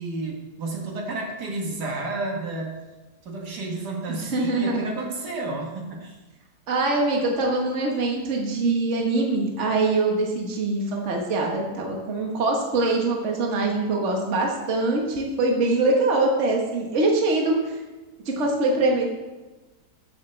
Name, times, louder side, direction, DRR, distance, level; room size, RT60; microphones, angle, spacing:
voice 1, 0.0-2.8 3.2-6.2, right 2 dB, 70° right, 0 dB, 2.0 m, -31 dB
voice 2, 4.1-4.9 6.7-17.8 18.2-19.1, right 2 dB, 45° right, 0 dB, 1.7 m, -23 dB
13.0 x 8.0 x 3.3 m, 1.2 s
omnidirectional pair, 1.8 m